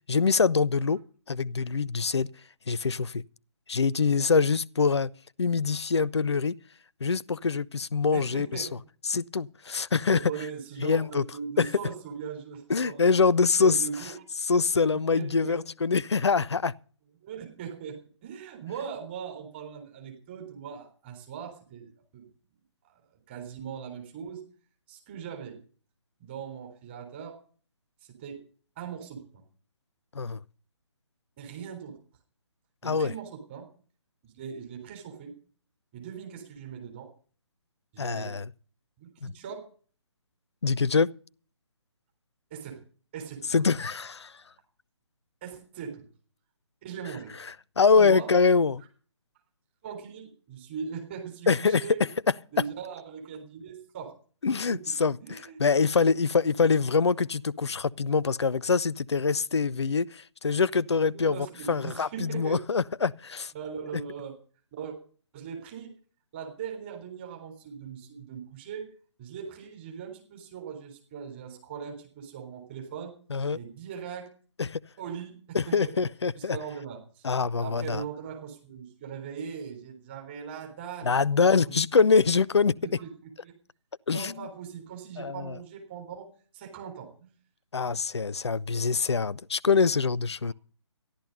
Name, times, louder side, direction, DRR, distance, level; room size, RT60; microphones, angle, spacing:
voice 1, 0.1-1.0 1.3-2.3 2.7-3.2 3.7-5.1 5.4-6.6 7.0-8.7 9.1-10.3 10.8-11.2 11.6-11.7 12.7-14.1 14.5-16.7 30.1-30.4 32.8-33.1 38.0-38.5 40.6-41.1 43.5-44.3 47.8-48.8 51.5-51.8 54.4-63.5 73.3-73.6 74.6-74.8 75.5-76.6 77.2-78.0 81.0-82.8 84.1-84.3 85.2-85.6 87.7-90.5, left 5 dB, 65° left, 0.5 m, -24 dB
voice 2, 8.1-8.7 10.1-13.1 13.6-14.2 15.1-15.6 17.2-22.3 23.3-24.4 24.9-25.6 26.2-27.4 28.1-28.4 28.8-29.4 31.4-32.0 32.8-33.7 34.2-35.3 35.9-37.1 37.9-38.4 39.0-39.7 42.5-42.8 43.1-43.7 45.4-46.0 46.8-47.3 47.9-48.3 49.8-52.1 52.5-54.1 54.7-54.9 55.2-55.6 61.1-62.6 63.5-64.4 64.7-65.0 65.3-65.9 66.3-68.9 69.2-73.1 73.5-74.3 75.0-76.0 76.4-77.3 77.6-81.8 82.8-83.5 84.1-86.3 86.5-87.3, right 7 dB, 25° right, 3.9 m, -40 dB
14.0 x 11.5 x 5.4 m
figure-of-eight pair, 140°, 16 cm